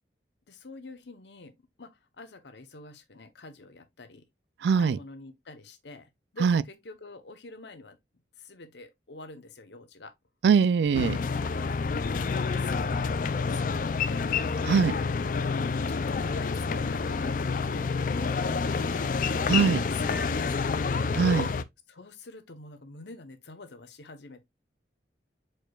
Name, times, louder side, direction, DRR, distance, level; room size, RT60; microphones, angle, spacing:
voice 1, 0.5-1.5 1.8-1.9 2.2-4.2 4.7-8.0 8.4-10.1 11.8-14.3 15.9-17.4 17.7-18.3 18.8-19.1 19.9-21.0 21.9-24.5, left 3 dB, 75° left, 0.9 m, -45 dB
voice 2, 4.6-5.0 6.4-6.6 10.4-11.2 14.7-14.9 19.5-19.8 21.2-21.5, right 6 dB, 75° right, 0.3 m, -22 dB
sound 1, 10.9-21.6, left 4 dB, 45° left, 0.3 m, -28 dB
4.7 x 4.6 x 2.3 m
head